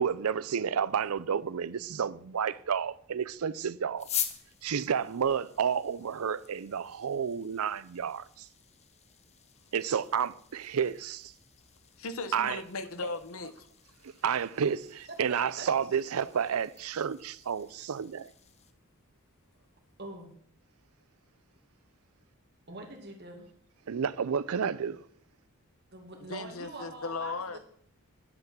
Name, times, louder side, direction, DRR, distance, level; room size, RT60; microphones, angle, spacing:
voice 1, 0.0-4.1 4.6-8.5 9.7-11.3 12.3-12.6 14.0-18.3 23.9-25.1, right 7 dB, 80° right, 0.5 m, -31 dB
sound 1, 4.0-18.7, left 9 dB, 30° left, 0.8 m, -45 dB
voice 2, 12.0-13.7 26.3-27.6, left 3 dB, 75° left, 1.0 m, -37 dB
voice 3, 15.3-15.7 20.0-20.3 22.7-23.5 25.9-27.6, right 2 dB, 50° right, 2.4 m, -43 dB
10.5 x 5.9 x 7.2 m
head